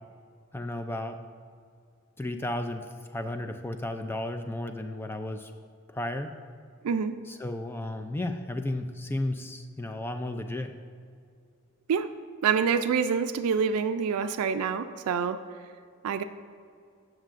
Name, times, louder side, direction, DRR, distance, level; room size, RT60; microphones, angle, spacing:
voice 1, 0.5-1.2 2.2-5.5 5.9-6.3 7.2-10.7, left 1 dB, 10° left, 7 dB, 0.3 m, -33 dB
voice 2, 6.8-7.2 11.9-12.1 12.4-15.4 16.0-16.2, right 6 dB, 90° right, 9 dB, 0.4 m, -26 dB
15.0 x 6.3 x 2.5 m, 2.2 s
head